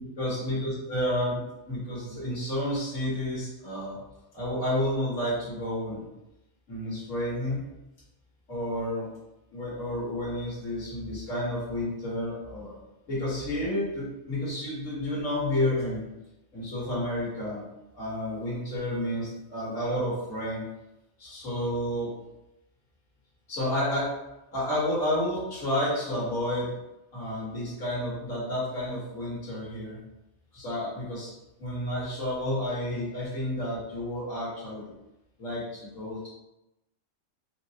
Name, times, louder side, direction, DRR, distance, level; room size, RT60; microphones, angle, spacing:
voice 1, 0.2-4.0 4.3-6.1 6.7-7.6 8.5-9.1 9.5-12.8 13.1-16.1 16.5-17.6 17.9-20.6 21.2-22.1 23.5-24.1 24.5-26.7 27.1-30.0 30.5-31.3 31.6-34.9 35.4-36.3, left 1 dB, 80° left, -8 dB, 1.9 m, -30 dB
4.6 x 2.0 x 2.8 m, 0.92 s
omnidirectional pair, 1.4 m